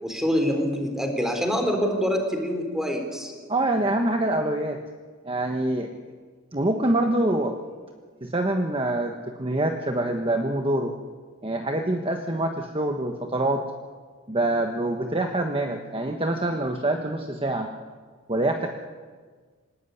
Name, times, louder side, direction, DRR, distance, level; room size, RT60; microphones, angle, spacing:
voice 1, 0.0-3.3, equal, ahead, 4 dB, 3.8 m, -25 dB
voice 2, 3.5-4.8 5.2-5.9 6.5-7.6 8.2-10.9 11.4-13.6 14.3-17.7 18.3-18.7, right 1 dB, 25° right, 3 dB, 1.3 m, -25 dB
26.5 x 17.5 x 9.9 m, 1.6 s
head